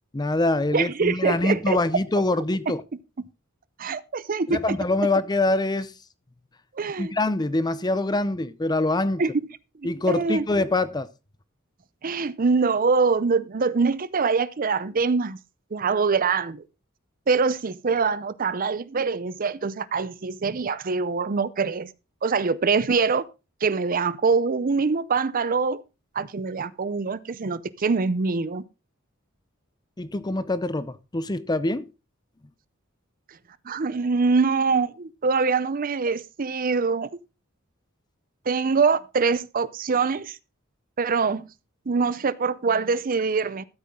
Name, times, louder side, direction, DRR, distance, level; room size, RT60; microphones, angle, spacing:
voice 1, 0.1-2.8 4.5-5.9 7.0-9.2 9.8-11.1 30.0-31.9, left 2 dB, 20° left, 0.6 m, -24 dB
voice 2, 0.7-1.8 2.7-2.8 3.8-4.8 6.7-7.1 9.2-9.3 9.8-10.4 12.0-15.4 15.7-16.6 17.3-21.9 22.2-23.3 23.6-25.8 26.1-28.6 33.6-37.2 38.5-40.4 41.0-41.5 41.9-43.6, right 4 dB, 40° right, 0.6 m, -24 dB
13.0 x 8.5 x 3.7 m
head